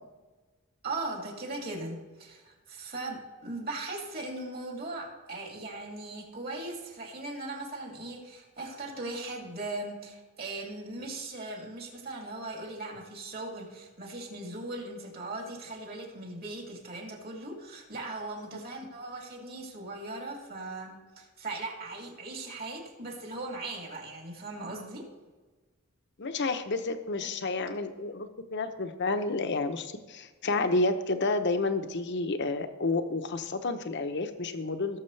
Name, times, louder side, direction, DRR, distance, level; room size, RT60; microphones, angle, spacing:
voice 1, 0.8-25.1, right 2 dB, 45° right, 0 dB, 2.7 m, -39 dB
voice 2, 26.2-35.0, left 3 dB, 55° left, 8 dB, 0.8 m, -30 dB
17.5 x 7.3 x 3.3 m, 1.3 s
head